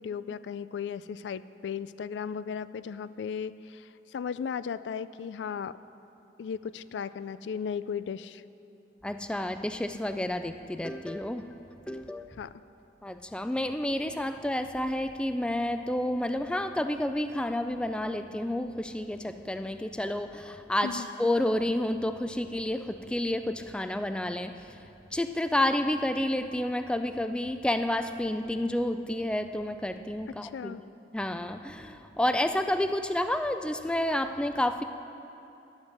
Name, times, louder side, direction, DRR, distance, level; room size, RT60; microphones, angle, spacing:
voice 1, 0.0-5.8 6.4-8.4 12.4-12.5 20.8-21.1 30.4-30.8, left 7 dB, 85° left, 15 dB, 0.3 m, -36 dB
voice 2, 9.0-11.5 11.9-12.3 13.0-24.6 25.1-30.8 31.1-34.8, left 1 dB, 5° left, 9 dB, 0.3 m, -30 dB
11.0 x 8.1 x 6.6 m, 2.9 s
head